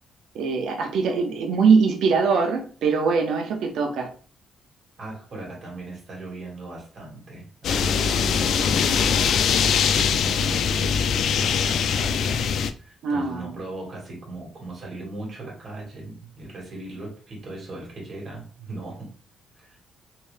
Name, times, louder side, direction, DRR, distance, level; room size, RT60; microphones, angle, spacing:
voice 1, 0.3-4.1 13.0-13.6, right 5 dB, 85° right, 3 dB, 0.8 m, -22 dB
voice 2, 5.0-11.1 11.4-12.5 12.8-19.1 19.6-19.8, right 2 dB, 45° right, -2 dB, 1.9 m, -38 dB
sound 1, 7.6-12.7, left 7 dB, 70° left, 0.3 m, -22 dB
3.4 x 2.7 x 3.4 m, 0.41 s
cardioid pair, 125°, 0 cm